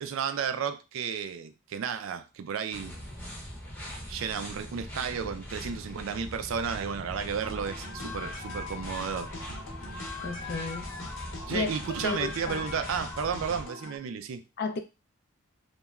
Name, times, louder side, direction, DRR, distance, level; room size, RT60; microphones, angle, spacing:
voice 1, 0.0-3.0 4.1-9.3 11.5-14.4, right 7 dB, 65° right, 0.3 m, -33 dB
sound 1, 2.7-13.7, equal, 10° left, 0.7 m, -42 dB
sound 2, 7.4-14.0, left 3 dB, 65° left, 0.8 m, -41 dB
voice 2, 10.2-10.9 11.5-11.7 12.0-12.6 14.6-14.8, left 4 dB, 45° left, 0.3 m, -32 dB
2.9 x 2.2 x 2.3 m
head